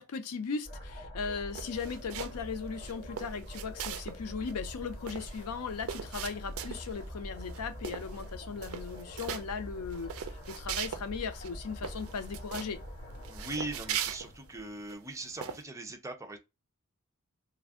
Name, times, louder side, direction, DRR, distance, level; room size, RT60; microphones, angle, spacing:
voice 1, 0.0-12.8, left 5 dB, 85° left, 0.5 m, -38 dB
sound 1, 0.6-14.9, equal, 25° left, 1.6 m, -44 dB
sound 2, 1.5-2.5 2.8-4.2 4.5-4.6 4.8-7.0 7.4-7.6 7.8-8.3 8.6-9.4 9.9-11.1 11.4-11.5 11.8-12.7 13.2-14.9 15.4-15.6, right 9 dB, 65° right, 0.4 m, -39 dB
voice 2, 13.3-16.4, right 2 dB, 15° right, 0.6 m, -40 dB
3.3 x 2.4 x 3.5 m
head